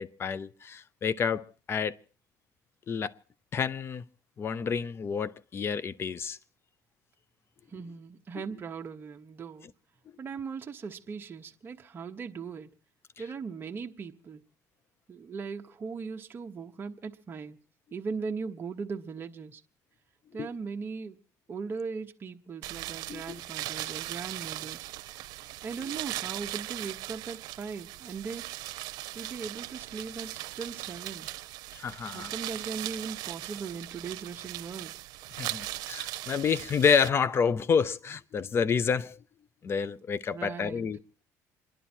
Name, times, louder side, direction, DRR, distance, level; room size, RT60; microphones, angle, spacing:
voice 1, 0.0-1.9 2.9-3.1 3.5-4.0 4.4-6.4 20.4-20.5 23.1-23.2 31.7-32.3 35.4-39.2 39.6-41.0, left 6 dB, 35° left, 0.7 m, -29 dB
voice 2, 7.7-9.7 10.2-12.7 13.2-14.4 15.1-17.6 17.9-19.6 20.3-21.2 21.5-24.9 25.6-28.4 29.1-31.3 32.1-35.0 40.3-40.9, right 5 dB, 30° right, 1.1 m, -39 dB
sound 1, 22.6-37.1, right 16 dB, 75° right, 0.9 m, -39 dB
27.5 x 11.0 x 4.4 m
cardioid pair, 110°, 7 cm